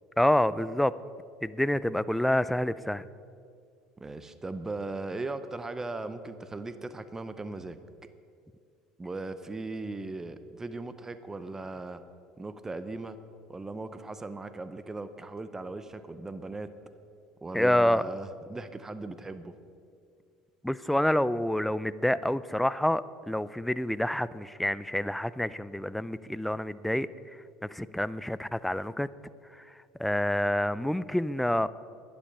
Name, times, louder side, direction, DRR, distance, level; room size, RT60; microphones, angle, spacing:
voice 1, 0.2-0.9 1.4-3.0 17.5-18.0 20.6-27.1 27.7-29.1 29.6-29.7 30.0-31.7, left 1 dB, 5° left, 17 dB, 0.3 m, -27 dB
voice 2, 4.0-7.8 9.0-12.0 12.4-13.2 13.5-16.7 17.4-19.5, right 2 dB, 15° right, 12 dB, 0.7 m, -38 dB
11.0 x 10.5 x 5.4 m, 2.3 s
supercardioid pair, 90°, 3 cm